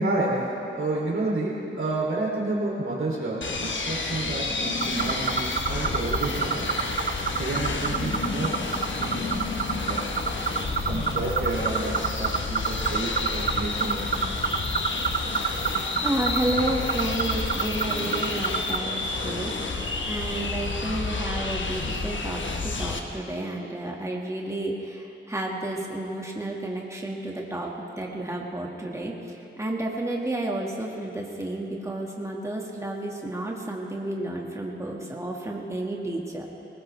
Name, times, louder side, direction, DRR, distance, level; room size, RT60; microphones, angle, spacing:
voice 1, 0.0-6.6 7.4-10.0 10.8-14.3, right 2 dB, 80° right, -4 dB, 3.0 m, -30 dB
sound 1, 3.4-23.0, left 3 dB, 70° left, 1.2 m, -30 dB
sound 2, 4.8-18.8, right 5 dB, 50° right, 0.6 m, -30 dB
voice 2, 16.0-19.5 20.1-27.7 28.0-29.1 29.6-36.5, right 1 dB, 15° right, -1 dB, 1.9 m, -31 dB
21.0 x 19.0 x 3.4 m, 2.8 s
wide cardioid pair, 70°, 20 cm